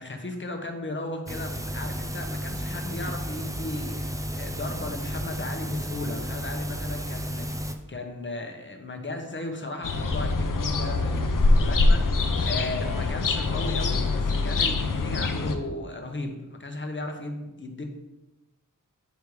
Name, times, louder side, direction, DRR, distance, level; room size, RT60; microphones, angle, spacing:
voice 1, 0.0-17.8, left 2 dB, 35° left, 4 dB, 1.0 m, -36 dB
sound 1, 1.3-7.7, equal, 10° right, 0.5 m, -33 dB
sound 2, 9.8-15.6, left 3 dB, 75° left, 0.7 m, -24 dB
8.1 x 3.4 x 4.7 m, 1.0 s
wide cardioid pair, 70°, 33 cm